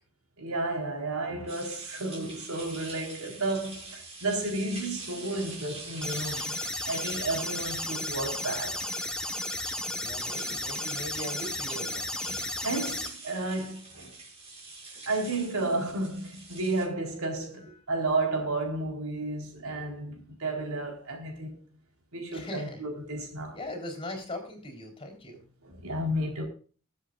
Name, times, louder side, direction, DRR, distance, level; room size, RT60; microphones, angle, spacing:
voice 1, 0.4-6.6 6.8-8.8 12.2-12.4 12.6-14.2 15.1-21.6 22.1-23.6 25.6-26.4, right 2 dB, 80° right, 4.1 m, -32 dB
sound 1, 1.5-16.8, right 3 dB, 30° right, 6.1 m, -45 dB
sound 2, 6.0-13.1, left 1 dB, 5° left, 1.3 m, -34 dB
voice 2, 9.9-12.4 17.6-17.7 22.3-22.8 23.5-25.5, left 1 dB, 25° left, 3.7 m, -40 dB
21.5 x 7.8 x 2.5 m
head